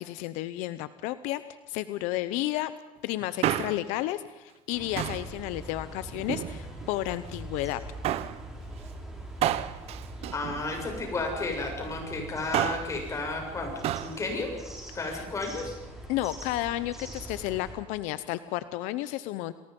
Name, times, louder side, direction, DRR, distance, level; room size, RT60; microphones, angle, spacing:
voice 1, 0.0-1.4 1.7-2.7 3.0-7.8 15.1-15.2 16.1-19.5, left 15 dB, 80° left, 13 dB, 0.9 m, -32 dB
Male speech man speaking, 3.2-4.0 5.0-5.3 6.1-6.9 8.0-8.4 9.4-11.1 12.3-13.0 13.8-14.2 14.4-14.5, right 12 dB, 55° right, 1.0 m, -30 dB
sound 1, 4.7-17.7, right 1 dB, 5° right, 6.2 m, -43 dB
voice 2, 10.3-13.7 14.0-14.5 14.9-15.7, left 3 dB, 25° left, 2 dB, 7.4 m, -32 dB
29.0 x 20.0 x 5.4 m, 1.1 s
cardioid pair, 135°, 12 cm